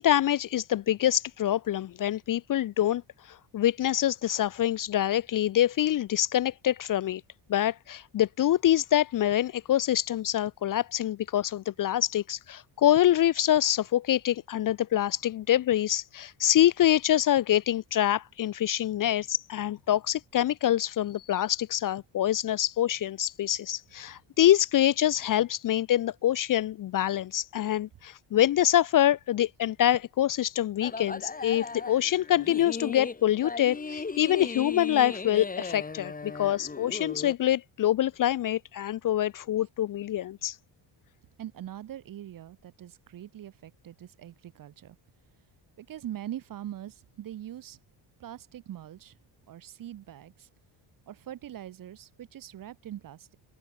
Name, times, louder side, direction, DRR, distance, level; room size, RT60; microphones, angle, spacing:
voice 1, 0.0-3.0 3.3-7.2 7.5-40.6, left 12 dB, 40° left, 0.5 m, -25 dB
sound 1, 30.8-37.3, left 4 dB, 15° left, 2.0 m, -37 dB
voice 2, 41.4-45.0 45.8-47.8 48.2-49.1 49.5-50.5 51.1-53.4, right 11 dB, 45° right, 0.8 m, -42 dB
open air
cardioid pair, 145°, 49 cm